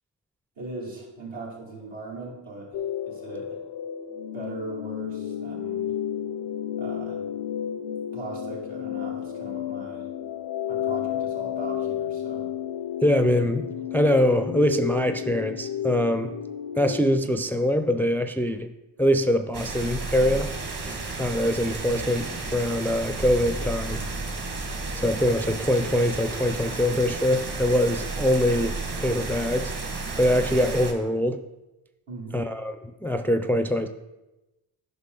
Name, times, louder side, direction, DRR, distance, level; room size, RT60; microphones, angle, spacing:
voice 1, 0.6-3.6 4.3-5.9 6.8-7.2 8.1-10.1 10.7-12.5 32.1-32.5, right 2 dB, 80° right, -4 dB, 2.7 m, -39 dB
sound 1, 2.7-17.1, left 10 dB, 70° left, 0.6 m, -32 dB
voice 2, 13.0-16.3 16.8-18.7 19.0-20.5 20.8-24.0 24.9-29.7 30.2-31.4 32.3-32.7 33.0-33.9, equal, 5° left, 8 dB, 0.4 m, -23 dB
sound 2, 19.5-30.9, right 3 dB, 45° right, 1.5 m, -32 dB
9.6 x 5.5 x 3.8 m, 1.0 s
supercardioid pair, 55°, 46 cm